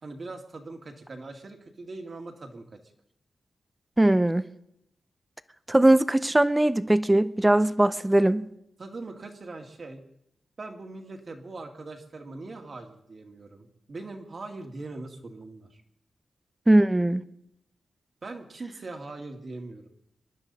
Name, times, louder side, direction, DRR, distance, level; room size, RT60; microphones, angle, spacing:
voice 1, 0.0-2.8 8.8-10.0 10.6-15.8 18.2-19.9, right 3 dB, 40° right, 4 dB, 2.1 m, -41 dB
voice 2, 4.0-4.4 5.7-8.5 16.7-17.2, right 1 dB, 10° right, 14 dB, 0.6 m, -20 dB
26.0 x 12.0 x 4.2 m, 0.79 s
wide cardioid pair, 130°, 0 cm